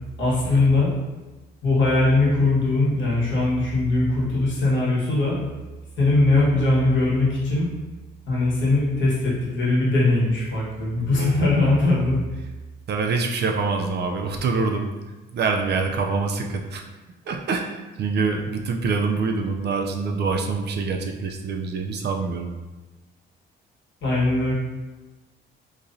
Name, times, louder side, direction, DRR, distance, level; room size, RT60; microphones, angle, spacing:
voice 1, 0.2-0.9 1.6-5.4 6.0-7.7 8.3-12.2 24.0-24.5, left 2 dB, 70° left, -5 dB, 1.4 m, -20 dB
voice 2, 11.0-11.9 12.9-14.9 15.3-16.8 17.3-22.5, right 4 dB, 55° right, 3 dB, 0.5 m, -25 dB
3.8 x 3.0 x 2.6 m, 1.2 s
cardioid pair, 90°, 20 cm